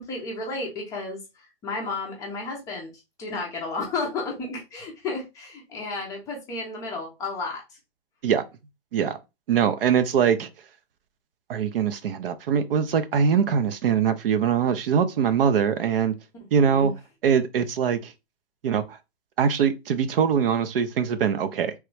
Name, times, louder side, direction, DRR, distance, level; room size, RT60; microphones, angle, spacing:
voice 1, 0.0-2.9 3.2-7.6 16.5-16.9, left 3 dB, 10° left, 0.5 m, -32 dB
voice 2, 9.5-10.5 11.5-16.1 16.5-16.9 17.2-18.1 18.6-19.0 19.4-21.7, right 7 dB, 60° right, 0.6 m, -22 dB
3.0 x 2.2 x 3.2 m
hypercardioid pair, 140°, 32 cm